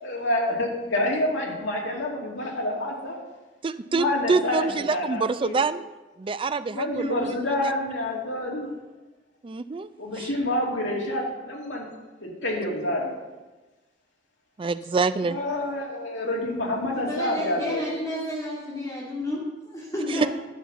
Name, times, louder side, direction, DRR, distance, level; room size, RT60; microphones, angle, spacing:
voice 1, 0.0-3.2 3.9-5.5 6.7-8.7 10.0-11.9 12.2-13.1 15.2-17.8, left 1 dB, 75° left, -2 dB, 2.4 m, -28 dB
voice 2, 3.6-5.9 6.2-7.4 7.6-7.7 9.4-9.9 10.2-10.3 14.6-15.4 20.1-20.2, right 4 dB, 30° right, 13 dB, 0.4 m, -26 dB
voice 3, 16.8-20.3, left 1 dB, 20° left, -6 dB, 2.1 m, -31 dB
11.0 x 5.6 x 7.1 m, 1.2 s
head